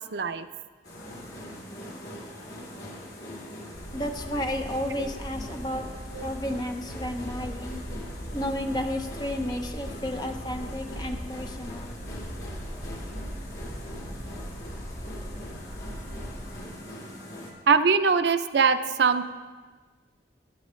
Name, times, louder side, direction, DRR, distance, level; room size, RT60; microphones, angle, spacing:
voice 1, 0.1-0.5 6.2-6.3 17.7-19.3, right 5 dB, 75° right, 11 dB, 0.5 m, -22 dB
sound 1, 0.8-17.5, left 1 dB, 70° left, 2.7 m, -42 dB
sound 2, 3.7-16.6, equal, 45° right, 2.0 m, -39 dB
voice 2, 3.9-5.9 6.2-7.8 8.3-11.9, left 1 dB, 25° left, 4 dB, 0.7 m, -32 dB
14.5 x 9.9 x 3.1 m, 1.4 s
head